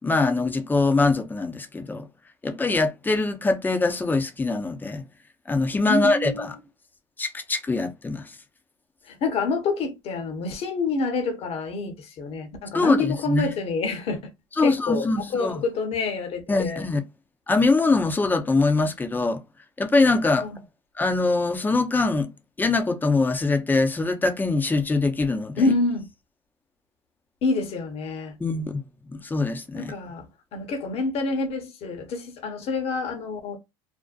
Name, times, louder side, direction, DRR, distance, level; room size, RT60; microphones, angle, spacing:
voice 1, 0.0-2.1 2.4-5.0 5.5-6.6 7.2-8.4 12.7-13.6 14.5-15.6 16.5-17.0 17.5-19.4 19.8-20.5 21.0-22.3 22.6-25.7 28.4-28.8 29.1-29.9, left 3 dB, 15° left, 0.6 m, -23 dB
voice 2, 5.9-6.5 9.1-14.2 14.6-16.9 20.4-20.6 25.6-26.1 27.4-28.4 29.7-30.2 30.5-33.6, left 3 dB, 50° left, 0.9 m, -27 dB
2.5 x 2.1 x 2.4 m
supercardioid pair, 90°, 13 cm